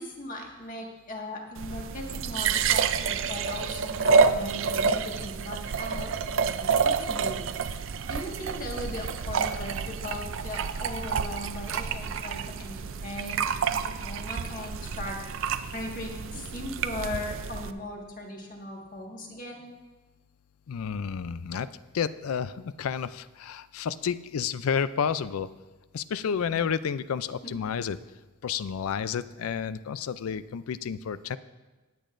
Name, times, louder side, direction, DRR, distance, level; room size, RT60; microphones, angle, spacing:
voice 1, 0.0-7.4 8.1-19.7 26.5-26.6 27.4-27.5, left 1 dB, 40° left, 0 dB, 1.7 m, -38 dB
sound 1, 1.6-17.7, right 5 dB, 65° right, 0.4 m, -28 dB
voice 2, 20.7-21.7 21.9-25.5 25.9-28.0 28.4-31.4, left 7 dB, 90° left, 15 dB, 0.4 m, -30 dB
19.0 x 8.5 x 2.5 m, 1.2 s
head